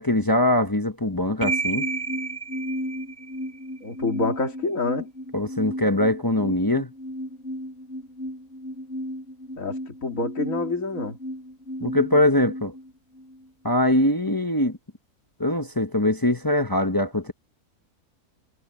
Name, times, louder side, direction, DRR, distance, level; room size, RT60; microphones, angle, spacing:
voice 1, 0.0-1.9 5.3-6.9 11.8-12.7 13.6-14.8 15.4-17.3, left 1 dB, 15° left, 0.9 m, -22 dB
sound 1, 1.4-13.5, right 1 dB, 45° left, 7.2 m, -33 dB
voice 2, 3.8-5.1 9.6-11.2, left 3 dB, 60° left, 3.2 m, -27 dB
omnidirectional pair, 1.6 m